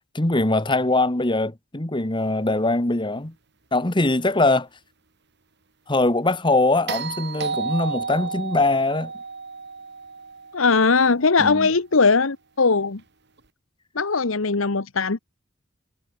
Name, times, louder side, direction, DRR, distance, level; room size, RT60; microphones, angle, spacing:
voice 1, 0.1-3.3 3.7-4.7 5.9-9.1 11.4-11.7, left 2 dB, 25° left, 1.6 m, -22 dB
sound 1, 6.9-11.1 13.4-13.5, right 5 dB, 55° right, 2.1 m, -32 dB
voice 2, 10.5-13.0 13.9-15.2, left 4 dB, 80° left, 1.2 m, -20 dB
head